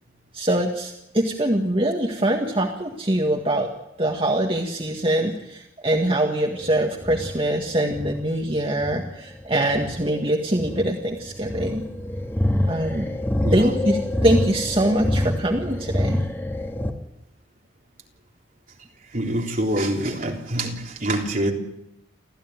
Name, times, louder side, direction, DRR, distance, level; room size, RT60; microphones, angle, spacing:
voice 1, 0.3-3.7 4.0-11.8 12.7-13.1 13.5-16.2, right 1 dB, 30° right, 1 dB, 1.8 m, -23 dB
sound 1, 6.5-16.9, left 1 dB, 10° left, 2.0 m, -27 dB
voice 2, 13.4-13.8 19.1-21.5, right 1 dB, 45° right, 0 dB, 3.6 m, -25 dB
28.5 x 14.5 x 9.6 m, 0.88 s
head